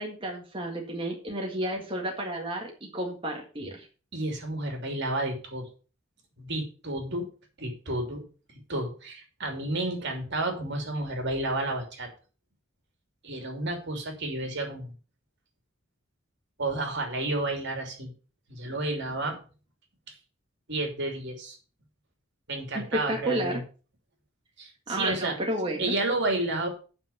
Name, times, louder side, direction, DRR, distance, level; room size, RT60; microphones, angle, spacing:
voice 1, 0.0-3.9 22.7-23.6 24.9-26.0, right 1 dB, 25° right, 0 dB, 1.9 m, -31 dB
voice 2, 4.1-5.7 6.4-7.3 7.6-8.2 8.7-12.1 13.2-14.9 16.6-18.1 18.5-19.4 20.7-21.6 22.5-23.6 24.6-25.4 25.8-26.7, right 2 dB, 60° right, 4 dB, 3.0 m, -31 dB
9.0 x 5.9 x 6.9 m, 0.36 s
head